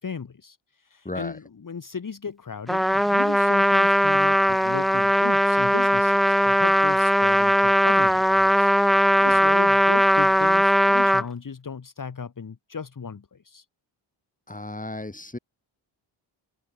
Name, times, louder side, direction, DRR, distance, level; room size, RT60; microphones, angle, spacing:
voice 1, 0.0-13.7, left 6 dB, 40° left, 1.9 m, -36 dB
voice 2, 1.0-1.4 9.3-9.4 14.5-15.4, left 2 dB, 15° left, 4.7 m, -34 dB
Trumpet, 2.7-11.2, equal, ahead, 0.7 m, -19 dB
open air
cardioid pair, 65°, 50 cm